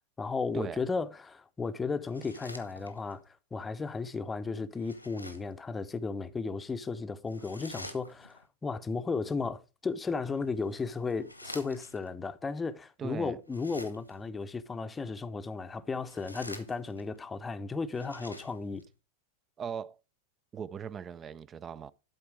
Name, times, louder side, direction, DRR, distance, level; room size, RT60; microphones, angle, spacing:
voice 1, 0.2-18.8, left 4 dB, 15° left, 0.7 m, -35 dB
sound 1, 2.0-3.2 4.7-5.6 7.3-8.4 10.2-12.1 13.4-14.3 15.9-17.2 17.8-18.9, left 1 dB, 90° left, 1.2 m, -48 dB
voice 2, 13.0-13.4 19.6-20.0 20.5-21.9, right 7 dB, 25° right, 0.4 m, -39 dB
12.0 x 4.4 x 4.8 m
figure-of-eight pair, 90°, 0 cm